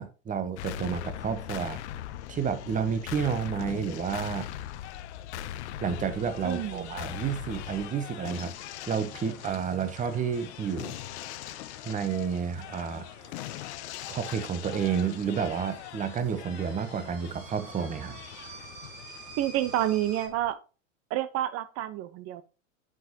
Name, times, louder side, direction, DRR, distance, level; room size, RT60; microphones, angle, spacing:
voice 1, 0.0-1.8 2.3-4.5 5.8-8.5 8.9-11.0 11.8-13.1 14.1-18.2, right 7 dB, 20° right, 1.0 m, -30 dB
sound 1, 0.6-20.5, left 12 dB, 60° left, 0.8 m, -41 dB
sound 2, 5.9-20.3, right 3 dB, 85° right, 3.1 m, -51 dB
voice 2, 6.4-6.9 19.4-20.6 21.1-22.4, right 13 dB, 40° right, 1.0 m, -29 dB
9.2 x 6.1 x 2.9 m
hypercardioid pair, 100°, 38 cm